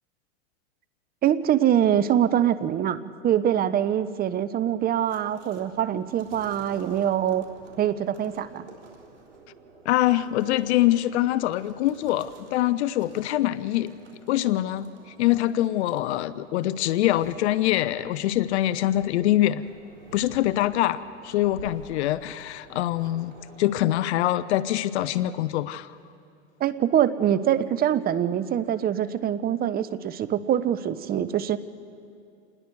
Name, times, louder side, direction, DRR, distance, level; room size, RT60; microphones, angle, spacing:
voice 1, 1.2-7.4 7.8-8.7 26.6-31.6, right 10 dB, 25° right, 15 dB, 0.8 m, -24 dB
sound 1, 5.1-24.0, right 4 dB, 80° right, 3.8 m, -50 dB
voice 2, 9.8-14.0 14.3-14.9 15.2-19.6 20.1-23.3 23.6-25.9, left 14 dB, 65° left, 16 dB, 0.7 m, -24 dB
28.0 x 19.5 x 4.7 m, 2.5 s
hypercardioid pair, 110°, 36 cm